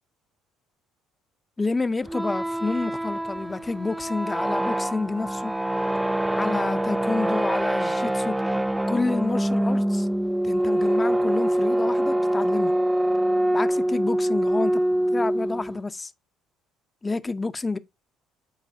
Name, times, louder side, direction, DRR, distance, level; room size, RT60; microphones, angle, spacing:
voice 1, 1.6-5.5 6.3-8.4 8.9-10.1 10.4-12.7 13.5-14.8 15.1-16.1 17.0-17.8, left 3 dB, 20° left, 0.7 m, -29 dB
sound 1, 2.0-15.8, right 1 dB, 10° right, 0.4 m, -24 dB
11.5 x 4.8 x 2.7 m
hypercardioid pair, 55°, 0 cm